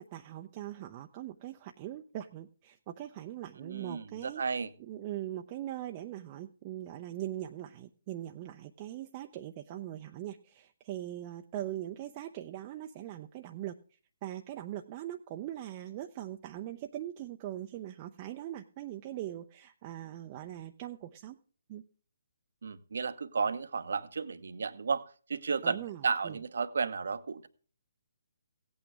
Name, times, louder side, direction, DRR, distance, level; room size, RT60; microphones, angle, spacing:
voice 1, 0.0-13.7 14.2-21.4 21.7-21.8 25.6-26.4, right 13 dB, 30° right, 4 dB, 0.7 m, -41 dB
voice 2, 3.6-4.7 22.6-25.0 25.3-27.5, right 5 dB, 65° right, 12 dB, 1.0 m, -33 dB
16.5 x 8.8 x 3.5 m, 0.40 s
figure-of-eight pair, 140°, 0 cm